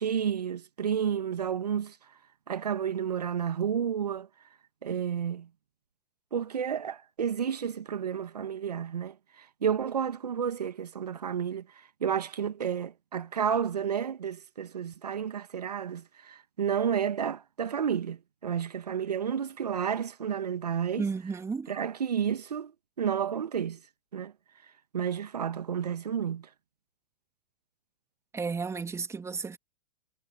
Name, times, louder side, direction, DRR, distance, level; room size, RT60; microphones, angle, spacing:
voice 1, 0.0-2.0 2.5-4.3 4.8-5.5 6.3-21.0 21.7-22.7 23.0-23.8 24.1-24.3 24.6-26.5, right 8 dB, 80° right, 1.5 m, -31 dB
voice 2, 21.0-21.7 28.3-29.6, right 5 dB, 15° right, 2.7 m, -33 dB
figure-of-eight pair, 100°, 20 cm